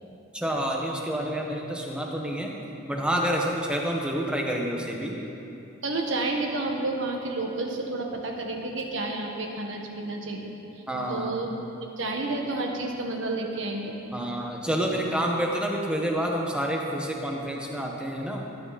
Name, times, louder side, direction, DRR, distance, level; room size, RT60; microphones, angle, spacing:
voice 1, 0.3-2.5 2.9-5.1 10.9-11.4 14.1-18.5, equal, 5° right, -1 dB, 1.2 m, -28 dB
voice 2, 5.8-10.5 11.1-11.6 12.0-14.0, right 2 dB, 65° right, 1 dB, 1.6 m, -30 dB
19.5 x 10.0 x 4.3 m, 2.9 s
head